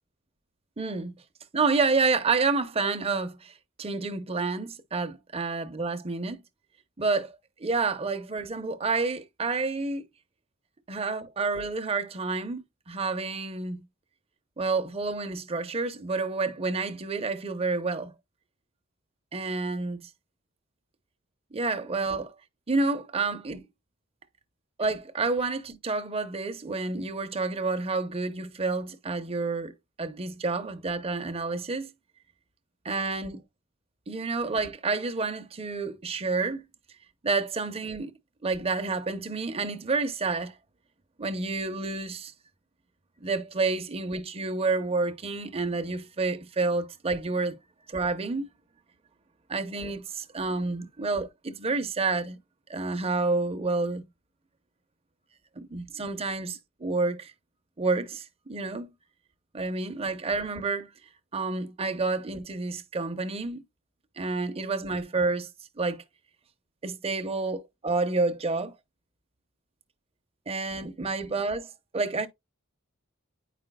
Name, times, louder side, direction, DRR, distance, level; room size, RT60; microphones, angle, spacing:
voice 1, 0.8-1.2 1.5-3.5 3.8-6.4 7.0-10.1 10.9-13.8 14.6-18.1 19.3-20.1 21.5-22.3 22.7-23.7 24.8-29.7 30.0-31.9 32.8-33.4 34.1-36.6 37.2-38.1 38.4-40.5 41.2-42.3 43.2-47.6 47.9-48.5 49.5-52.4 52.7-54.1 55.6-57.3 57.8-58.9 59.5-60.9 61.3-63.6 64.2-65.5 65.8-66.0 66.8-68.7 70.5-71.7 71.9-72.3, right 3 dB, 30° right, 0.7 m, -29 dB
9.4 x 4.9 x 2.2 m
head